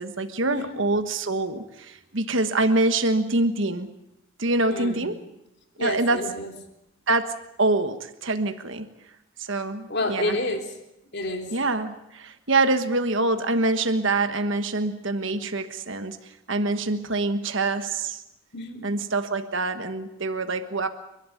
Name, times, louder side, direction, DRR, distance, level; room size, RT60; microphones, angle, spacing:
voice 1, 0.0-3.9 4.4-5.2 5.8-6.2 7.1-8.9 9.4-10.4 11.5-16.2 16.5-18.2 18.8-20.9, right 2 dB, 65° right, 8 dB, 1.4 m, -25 dB
voice 2, 4.7-5.1 5.8-6.5 9.9-10.8 11.1-11.5 18.5-18.9, left 1 dB, 50° left, 4 dB, 3.4 m, -29 dB
29.5 x 12.5 x 9.2 m, 0.85 s
head